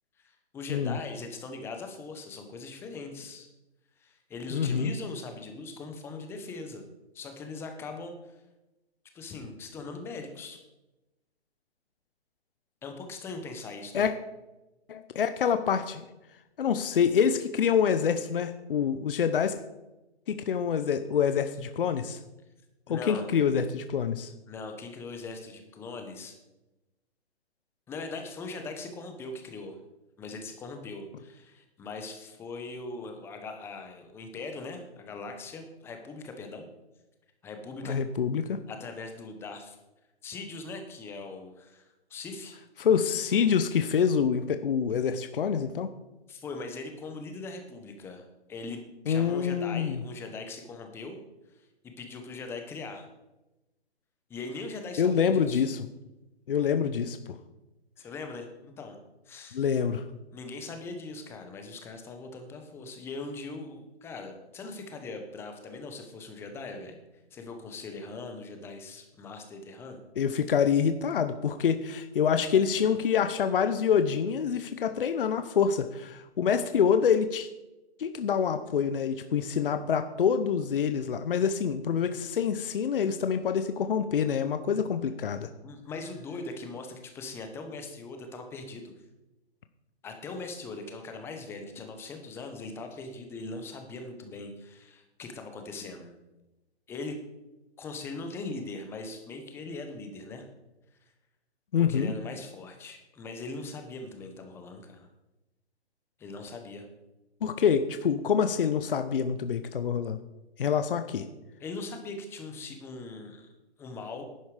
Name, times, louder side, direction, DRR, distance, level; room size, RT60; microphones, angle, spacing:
voice 1, 0.2-3.5 4.0-6.8 7.1-8.4 9.1-10.6 12.8-14.1 22.9-23.3 24.5-26.4 27.9-29.8 30.2-36.7 37.4-38.0 38.7-39.8 40.2-42.6 46.3-48.8 49.0-51.2 52.0-53.1 54.3-55.7 58.0-59.0 59.3-59.6 60.3-67.0 67.3-70.0 85.6-88.9 90.0-96.1 96.9-97.2 97.8-100.5 101.9-105.1 106.2-106.9 111.6-113.5 113.8-114.2, left 3 dB, 5° left, 5 dB, 0.9 m, -40 dB
voice 2, 4.5-4.9 13.9-14.1 14.9-16.0 16.6-19.6 20.3-22.2 22.9-24.3 37.8-38.6 42.8-45.9 49.1-50.0 55.0-55.9 56.5-57.4 59.5-60.0 70.2-77.5 78.0-85.5 101.7-102.1 107.4-110.2 110.6-111.3, left 7 dB, 55° left, 9 dB, 0.9 m, -26 dB
11.5 x 9.4 x 5.0 m, 1.0 s
hypercardioid pair, 150°, 33 cm